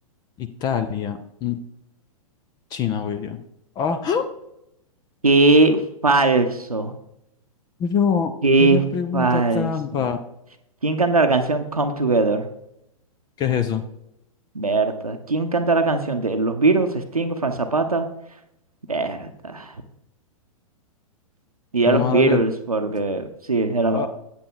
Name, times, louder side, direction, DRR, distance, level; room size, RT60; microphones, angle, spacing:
voice 1, 0.4-1.6 2.7-3.4 3.8-4.2 7.8-8.3 8.6-10.2 13.4-13.8 21.9-22.4 23.9-24.1, left 7 dB, 20° left, 9 dB, 0.6 m, -24 dB
voice 2, 5.2-6.9 8.4-8.8 9.1-10.1 10.8-12.5 14.5-18.1 18.9-19.7 21.7-24.1, right 3 dB, 90° right, 6 dB, 0.8 m, -20 dB
8.5 x 8.0 x 3.8 m, 0.81 s
figure-of-eight pair, 110°, 18 cm